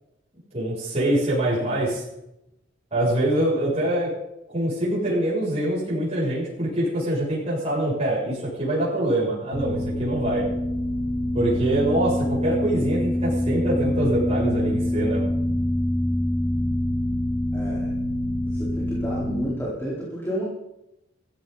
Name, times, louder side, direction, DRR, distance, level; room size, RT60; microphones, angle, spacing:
voice 1, 0.5-2.0 2.9-4.1 4.5-10.5 11.3-15.2, right 1 dB, 35° right, -8 dB, 7.2 m, -24 dB
sound 1, 9.5-19.6, left 1 dB, 35° left, 1.6 m, -25 dB
voice 2, 17.5-17.9 18.2-20.4, equal, 15° left, -6 dB, 4.3 m, -32 dB
16.0 x 15.5 x 4.1 m, 0.87 s
head